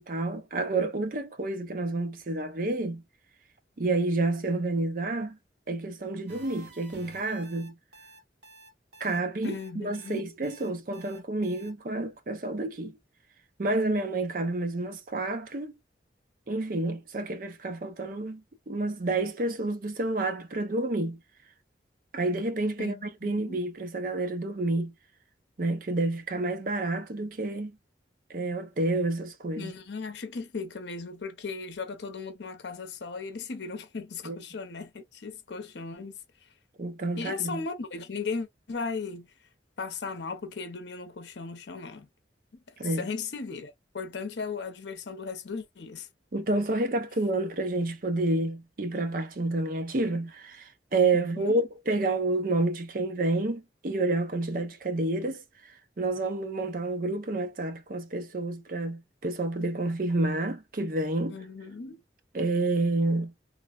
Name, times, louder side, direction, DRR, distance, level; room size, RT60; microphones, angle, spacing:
voice 1, 0.0-3.0 3.8-5.4 5.7-7.7 9.0-13.0 13.6-15.7 16.5-21.2 22.1-24.9 25.6-27.8 28.3-29.7 34.2-34.4 36.8-37.6 42.8-43.1 46.3-55.4 56.0-61.4 62.3-63.3, right 2 dB, 50° right, 0.5 m, -29 dB
sound 1, 6.3-11.7, right 2 dB, 80° right, 1.1 m, -50 dB
voice 2, 9.4-10.2 22.8-23.6 29.6-36.5 37.2-39.3 39.8-42.1 42.5-46.1 51.1-51.6 61.3-62.0, left 4 dB, 75° left, 0.6 m, -37 dB
3.1 x 2.0 x 2.3 m
head